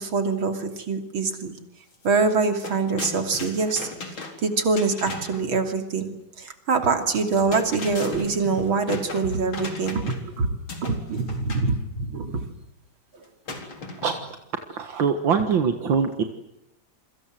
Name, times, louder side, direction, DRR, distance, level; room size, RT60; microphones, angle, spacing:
voice 1, 0.0-1.5 2.0-3.9 4.4-6.1 6.4-10.5 10.8-12.4, right 4 dB, 90° right, 7 dB, 3.7 m, -24 dB
sound 1, 1.9-2.1 2.3-5.5 7.1-10.3 10.7-11.7 13.5-14.4, left 3 dB, 85° left, 4.9 m, -36 dB
voice 2, 14.8-16.2, right 6 dB, 70° right, 6 dB, 2.4 m, -23 dB
28.5 x 24.5 x 7.8 m, 0.82 s
omnidirectional pair, 2.2 m